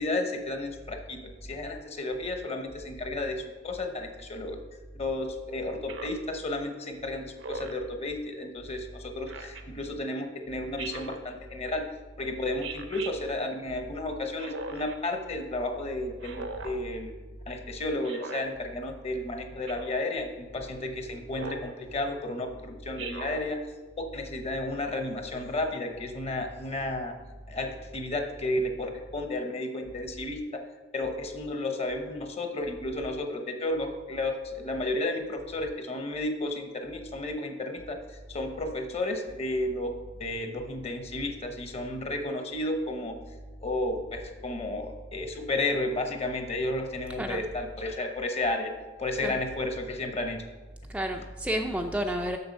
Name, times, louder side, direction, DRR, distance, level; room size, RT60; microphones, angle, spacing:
voice 1, 0.0-4.6 4.9-11.8 12.2-17.1 17.5-23.6 24.0-27.2 27.5-30.6 30.9-38.0 38.3-39.9 40.2-43.2 43.6-48.7 49.0-50.4, left 2 dB, 35° left, 5 dB, 0.9 m, -32 dB
Speech synthesizer, 5.9-6.3 7.4-7.9 9.3-9.6 10.8-11.2 12.6-13.1 14.4-15.0 16.2-16.8 18.0-18.5 19.7-20.0 21.3-21.7 23.0-23.5, right 3 dB, 70° right, 0.8 m, -39 dB
voice 2, 47.1-47.4 49.2-49.4 50.9-52.4, equal, 5° right, 3 dB, 0.4 m, -31 dB
6.8 x 6.7 x 5.4 m, 1.3 s
head